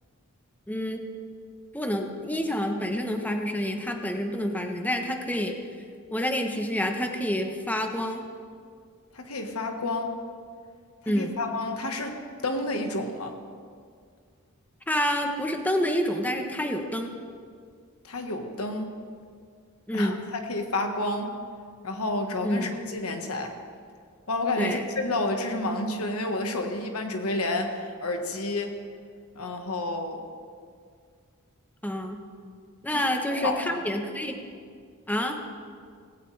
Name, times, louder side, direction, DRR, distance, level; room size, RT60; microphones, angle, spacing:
voice 1, 0.7-1.0 1.7-5.5 6.1-8.2 11.1-11.4 14.9-17.1 19.9-20.2 22.4-22.7 24.6-24.9 31.8-32.2 32.8-34.3 35.1-35.4, equal, 10° left, 4 dB, 1.1 m, -28 dB
voice 2, 9.1-10.2 11.0-13.3 18.0-18.9 19.9-21.4 21.8-23.5 24.3-28.8 29.4-30.2 32.9-33.8, left 2 dB, 80° left, 4 dB, 1.5 m, -30 dB
18.0 x 16.0 x 3.4 m, 2.1 s
head